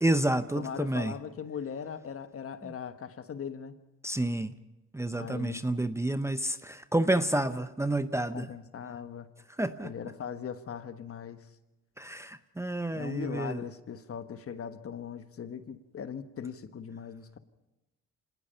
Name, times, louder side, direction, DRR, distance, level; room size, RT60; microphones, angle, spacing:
voice 1, 0.0-1.1 2.6-2.7 4.0-4.5 4.9-8.5 9.6-9.9 12.0-13.6, right 1 dB, 10° right, 0.7 m, -29 dB
voice 2, 0.5-3.7 5.1-5.8 8.3-9.3 9.8-11.5 12.9-17.4, left 7 dB, 50° left, 1.3 m, -39 dB
25.5 x 19.0 x 5.7 m
cardioid pair, 90°, 30 cm